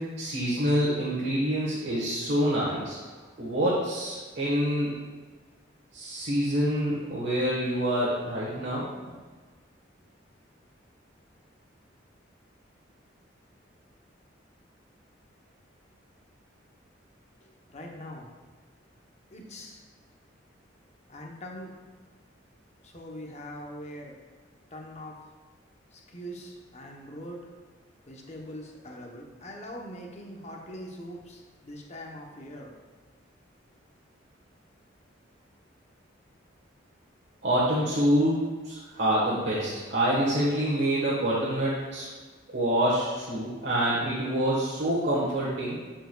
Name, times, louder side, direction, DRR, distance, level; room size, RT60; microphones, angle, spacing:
voice 1, 0.0-3.0 3.4-4.9 5.9-8.9 37.4-42.1 42.5-45.8, right 1 dB, 60° right, -8 dB, 1.3 m, -26 dB
voice 2, 17.7-18.3 19.3-19.8 21.1-21.7 22.8-24.2 24.7-25.2 25.9-27.4 28.1-32.7, equal, 35° left, 0 dB, 0.8 m, -42 dB
11.0 x 4.6 x 2.3 m, 1.4 s
head